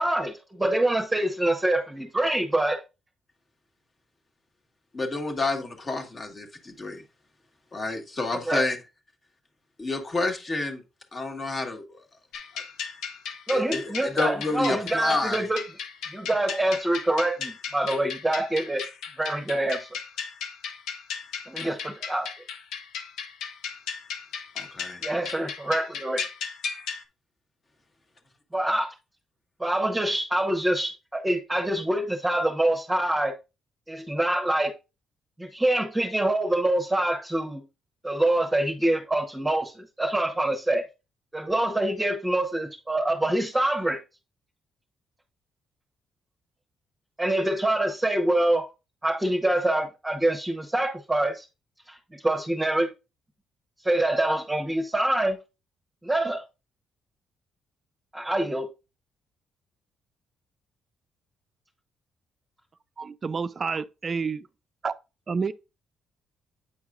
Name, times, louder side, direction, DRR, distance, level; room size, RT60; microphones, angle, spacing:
voice 1, 0.0-2.8 8.3-8.7 13.5-15.7 16.1-18.8 19.2-20.0 21.5-22.3 25.0-26.2 28.5-28.9 29.6-33.3 33.9-34.7 35.4-37.6 38.0-40.8 41.3-44.0 47.2-48.7 49.0-51.5 51.9-52.9 53.8-55.4 56.0-56.4 58.1-58.7, right 1 dB, 10° right, 1.0 m, -25 dB
voice 2, 4.9-7.0 7.7-8.8 9.8-10.8 11.1-11.9 13.5-15.5 24.5-25.0, left 3 dB, 35° left, 1.4 m, -29 dB
sound 1, 12.3-27.0, left 6 dB, 90° left, 0.7 m, -36 dB
voice 3, 63.0-64.4 64.8-64.9 65.3-65.5, right 5 dB, 40° right, 0.4 m, -29 dB
8.8 x 4.7 x 2.4 m
cardioid pair, 90°, 0 cm